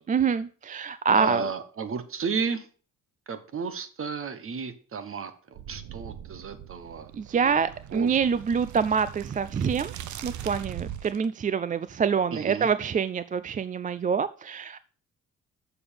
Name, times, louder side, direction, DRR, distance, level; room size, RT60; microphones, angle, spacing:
voice 1, 0.1-1.4 7.1-9.9 10.2-14.8, right 6 dB, 25° right, 14 dB, 0.4 m, -26 dB
voice 2, 1.1-2.7 3.3-7.6 7.9-8.1 12.3-12.7, right 5 dB, 45° right, 11 dB, 1.3 m, -33 dB
sound 1, 5.5-11.3, right 10 dB, 70° right, 0.8 m, -40 dB
7.0 x 6.9 x 5.3 m, 0.40 s
cardioid pair, 90°, 30 cm